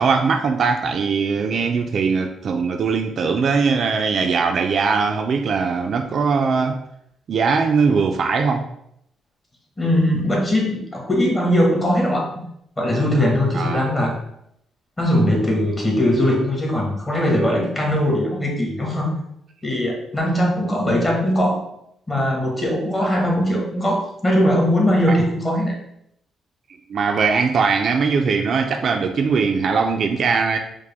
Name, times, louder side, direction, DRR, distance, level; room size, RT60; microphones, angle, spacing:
voice 1, 0.0-6.8 7.3-8.6 13.5-13.8 25.1-25.2 26.9-30.6, right 5 dB, 55° right, 4 dB, 0.4 m, -20 dB
voice 2, 9.8-12.4 12.8-14.2 15.0-19.2 19.6-21.7 22.1-25.8, equal, 20° left, -1 dB, 1.4 m, -20 dB
4.8 x 2.2 x 3.4 m, 0.75 s
cardioid pair, 90°, 0 cm